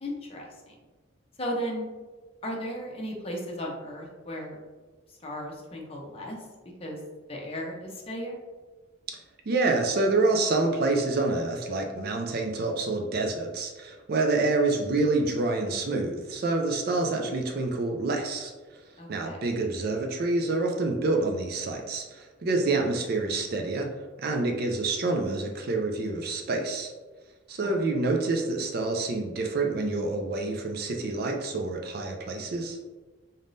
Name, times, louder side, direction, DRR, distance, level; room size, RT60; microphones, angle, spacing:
voice 1, 0.0-0.7 1.4-1.8 2.4-4.6 5.2-6.4 6.8-7.0 7.3-8.4 19.0-19.4 27.6-27.7, equal, 30° left, -2 dB, 0.7 m, -35 dB
voice 2, 9.5-18.5 19.1-23.9 24.2-26.9 27.5-32.8, right 3 dB, 50° right, 2 dB, 0.4 m, -27 dB
3.8 x 3.5 x 2.6 m, 1.3 s
head